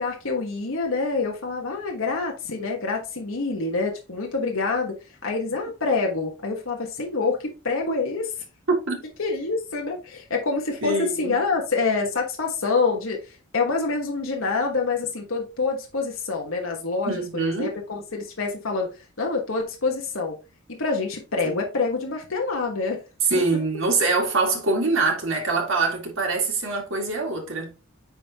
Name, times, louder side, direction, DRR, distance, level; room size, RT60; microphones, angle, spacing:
voice 1, 0.0-4.9 5.2-7.4 7.6-8.3 9.2-13.2 13.5-18.9 19.2-20.4 20.7-23.0, left 4 dB, 70° left, 1.3 m, -26 dB
voice 2, 8.7-9.0 10.8-11.4 17.1-17.7 21.5-21.6 23.3-27.7, right 3 dB, 60° right, 2.0 m, -24 dB
9.7 x 3.7 x 2.9 m
head